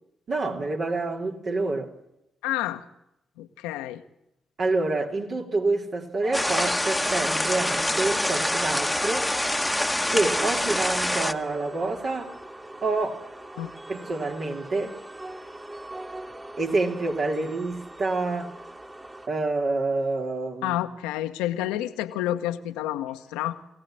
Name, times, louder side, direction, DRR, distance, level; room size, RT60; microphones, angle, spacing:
voice 1, 0.3-1.9 4.6-9.3 10.1-12.3 12.8-13.2 13.9-15.0 16.6-18.5 19.3-20.8, right 3 dB, 55° right, 3.2 m, -27 dB
voice 2, 2.4-2.8 3.4-4.0 13.6-13.7 20.6-23.6, left 13 dB, 80° left, 1.1 m, -29 dB
sound 1, 6.2-19.3, right 1 dB, 25° right, 2.6 m, -41 dB
sound 2, 6.3-11.3, left 1 dB, 5° left, 1.3 m, -25 dB
23.5 x 17.0 x 7.7 m
hypercardioid pair, 40°, 0 cm